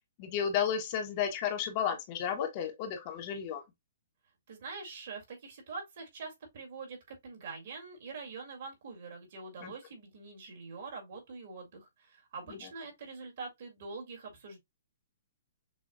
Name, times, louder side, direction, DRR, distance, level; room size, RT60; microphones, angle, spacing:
voice 1, 0.2-3.6 9.6-9.7, left 8 dB, 35° left, 0.8 m, -32 dB
voice 2, 4.5-14.6, right 4 dB, 55° right, 1.9 m, -44 dB
6.2 x 2.2 x 2.3 m
hypercardioid pair, 160°, 0 cm